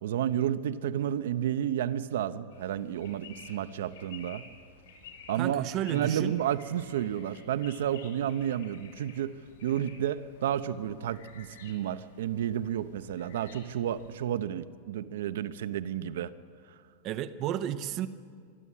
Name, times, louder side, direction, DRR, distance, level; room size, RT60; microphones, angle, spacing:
voice 1, 0.0-4.4 5.3-16.3, right 10 dB, 80° right, 13 dB, 0.8 m, -31 dB
sound 1, 2.5-14.2, left 5 dB, 85° left, 5.5 m, -53 dB
voice 2, 5.4-6.3 17.0-18.1, right 11 dB, 35° right, 12 dB, 0.7 m, -32 dB
23.5 x 13.0 x 8.5 m, 2.1 s
supercardioid pair, 160°, 0 cm